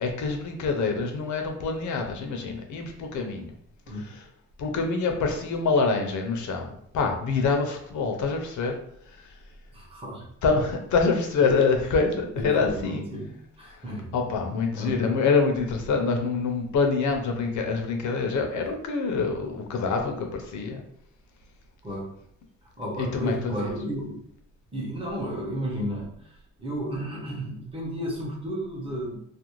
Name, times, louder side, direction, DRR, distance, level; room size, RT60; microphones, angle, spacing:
voice 1, 0.0-3.5 4.6-8.7 9.1-9.3 10.4-13.0 14.1-20.8 23.0-23.7, left 4 dB, 70° left, 4 dB, 0.5 m, -26 dB
voice 2, 9.7-10.2 10.5-10.6 11.4-11.5 12.4-14.1 14.7-15.2 21.8-22.1 22.8-24.2 24.7-29.2, equal, 20° right, -3 dB, 0.7 m, -33 dB
2.5 x 2.1 x 3.0 m, 0.69 s
wide cardioid pair, 160°, 31 cm